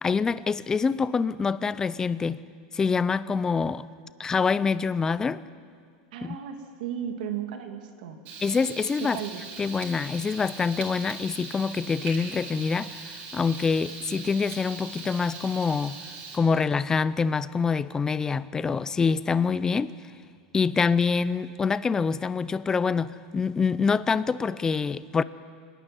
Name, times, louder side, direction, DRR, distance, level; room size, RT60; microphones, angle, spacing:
voice 1, 0.0-2.4 2.7-3.9 4.2-5.4 6.2-6.4 8.4-9.2 9.6-16.0 16.3-19.9 20.5-25.2, left 5 dB, 10° left, 17 dB, 0.4 m, -25 dB
voice 2, 6.1-8.2 9.0-9.4, right 9 dB, 70° right, 5 dB, 2.5 m, -35 dB
Frying (food), 8.2-16.4, right 4 dB, 40° right, 4.4 m, -40 dB
26.5 x 11.5 x 9.7 m, 2.2 s
supercardioid pair, 160°, 5 cm